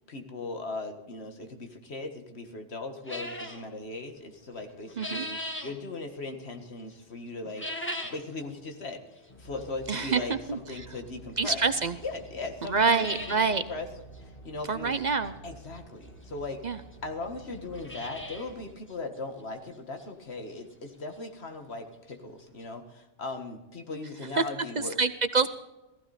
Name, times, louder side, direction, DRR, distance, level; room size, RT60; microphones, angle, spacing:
voice 1, 0.1-7.7 8.1-11.6 12.0-13.9 14.4-15.0 15.4-16.6 17.0-25.0, left 3 dB, 70° left, 5 dB, 1.9 m, -38 dB
sound 1, 3.1-3.6 4.6-5.7 7.4-8.3 8.7-8.8 9.6-9.7 11.4-11.5 11.9-12.0 12.3-12.4 12.6-13.4 13.8-13.9 14.1-14.2 15.8-15.9 16.6-16.7 16.9-17.0 17.5-18.5 18.9-19.0 19.5-19.6 20.0-20.1 21.8-21.9 22.1-22.2 22.6-22.7, left 1 dB, 10° left, 1.6 m, -38 dB
sound 2, 9.3-18.7, right 1 dB, 55° left, 4.1 m, -50 dB
voice 2, 9.9-10.9 11.4-12.0 12.7-13.6 14.7-15.3 16.6-16.8 24.3-24.4 24.8-25.5, right 4 dB, 50° right, 12 dB, 0.7 m, -26 dB
15.5 x 15.5 x 4.2 m, 1.0 s
omnidirectional pair, 1.1 m